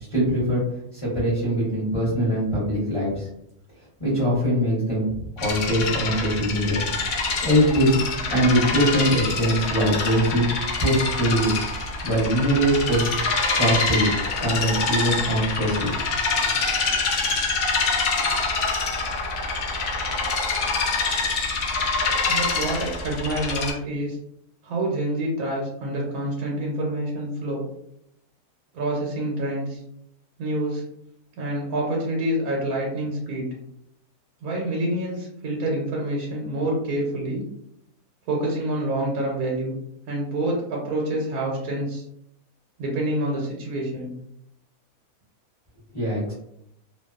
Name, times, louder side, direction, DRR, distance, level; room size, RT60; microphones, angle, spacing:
voice 1, 0.1-0.6 0.9-3.3 4.0-5.1 5.4-6.8 7.4-10.4 10.8-11.5 12.0-13.1 13.6-15.9 45.9-46.3, equal, 25° left, -8 dB, 0.9 m, -22 dB
sound 1, 5.4-23.7, left 4 dB, 65° left, 0.8 m, -25 dB
voice 2, 22.3-24.2 24.6-27.6 28.7-29.8 30.4-30.8 31.4-33.5 34.4-37.4 38.3-39.7 40.1-42.0 42.8-44.1, right 1 dB, 75° right, -2 dB, 1.1 m, -27 dB
2.5 x 2.2 x 2.3 m, 0.75 s
omnidirectional pair, 1.6 m